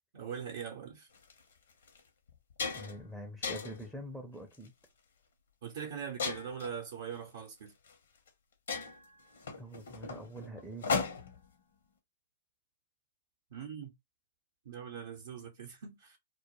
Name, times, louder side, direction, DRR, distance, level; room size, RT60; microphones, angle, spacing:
voice 1, 0.1-1.1 5.6-7.7 13.5-13.9 14.7-16.2, right 7 dB, 60° right, 0.6 m, -42 dB
Putting food in an air fryer, 1.1-1.3 1.9-2.0 2.3-3.0 3.4-3.9 4.5-4.8 6.2-6.7 7.9-8.0 8.3-8.4 8.7-11.5, left 5 dB, 70° left, 0.7 m, -36 dB
voice 2, 2.7-4.7 9.6-10.9, right 1 dB, 5° right, 0.4 m, -45 dB
2.1 x 2.0 x 2.9 m
figure-of-eight pair, 115°, 0 cm